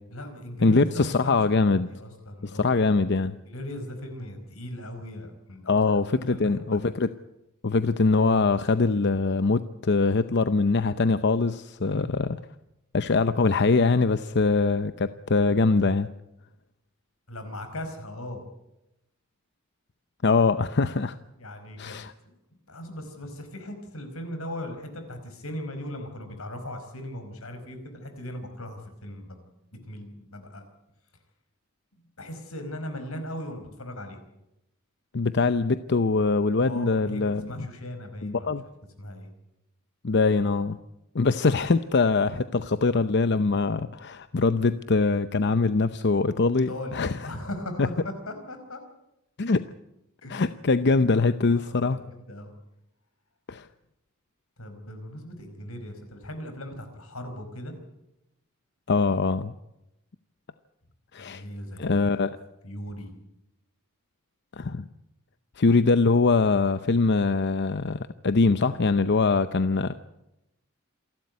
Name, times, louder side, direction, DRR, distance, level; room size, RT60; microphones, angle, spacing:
voice 1, 0.1-1.4 1.6-2.8 3.4-5.7 6.1-6.8 11.8-12.1 17.3-18.4 21.4-22.0 22.2-22.3 22.7-29.4 29.9-30.6 31.9-34.2 36.6-38.5 39.0-39.3 46.7-48.8 50.2-50.4 51.5-52.5 54.6-57.7 61.2-62.3 62.6-63.1, left 1 dB, 85° left, 7 dB, 5.0 m, -38 dB
voice 2, 0.6-1.9 2.4-3.4 5.7-7.1 7.6-12.4 12.9-16.1 20.2-21.2 21.8-22.1 35.1-37.7 38.2-38.6 40.0-40.8 41.1-47.3 49.4-49.6 50.3-52.0 53.5-53.7 58.9-59.5 61.1-61.4 61.8-62.4 64.6-64.9 65.6-69.9, left 3 dB, 55° left, 12 dB, 0.7 m, -23 dB
27.5 x 12.5 x 9.6 m, 0.90 s
head